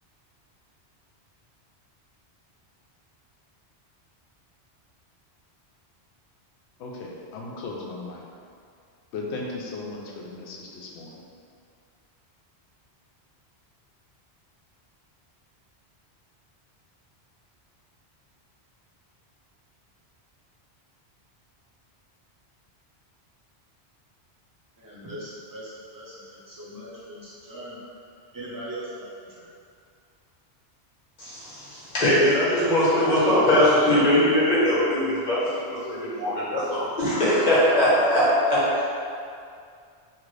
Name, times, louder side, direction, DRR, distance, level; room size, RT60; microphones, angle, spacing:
voice 1, 6.8-8.2 9.1-11.2, left 3 dB, 80° left, -2 dB, 0.8 m, -36 dB
voice 2, 24.8-27.8 28.3-29.1 29.3-29.4, right 1 dB, 25° right, -8 dB, 0.6 m, -40 dB
voice 3, 31.2-38.8, left 1 dB, 40° left, -9 dB, 1.0 m, -21 dB
2.9 x 2.5 x 3.1 m, 2.3 s
omnidirectional pair, 1.1 m